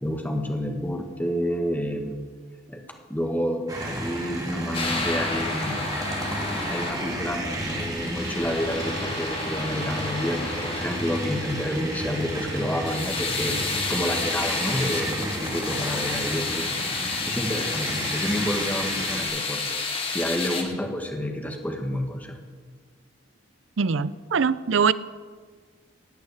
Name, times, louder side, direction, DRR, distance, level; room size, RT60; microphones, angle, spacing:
voice 1, 0.0-2.2 2.7-2.8 3.1-5.8 6.7-22.4, equal, 10° left, 2 dB, 1.6 m, -29 dB
sound 1, 3.7-19.2, right 1 dB, 20° right, 2.4 m, -32 dB
sound 2, 4.7-20.6, left 3 dB, 30° left, 1.9 m, -31 dB
voice 2, 23.8-24.9, right 6 dB, 75° right, 17 dB, 0.5 m, -22 dB
17.5 x 6.4 x 9.8 m, 1.5 s
head